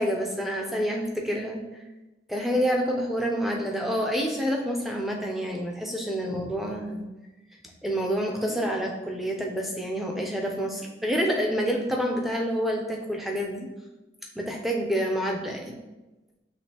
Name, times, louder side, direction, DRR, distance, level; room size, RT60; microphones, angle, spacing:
voice 1, 0.0-1.6 2.3-7.1 7.8-13.7 14.4-15.7, equal, ahead, 0 dB, 0.4 m, -28 dB
6.3 x 2.8 x 2.8 m, 1.1 s
head